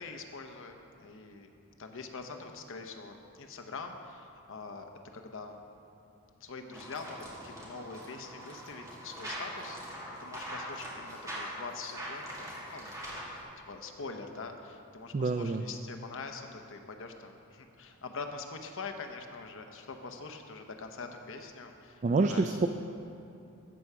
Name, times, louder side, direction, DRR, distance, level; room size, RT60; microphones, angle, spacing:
voice 1, 0.0-1.5 1.8-4.9 5.1-5.6 6.4-13.2 13.7-22.0 22.3-22.5, left 4 dB, 60° left, 5 dB, 0.9 m, -44 dB
sound 1, 6.7-13.4, equal, 15° right, 2.1 m, -42 dB
voice 2, 15.1-15.7 22.0-22.7, right 3 dB, 35° right, 6 dB, 0.3 m, -27 dB
14.0 x 4.8 x 6.7 m, 2.7 s
head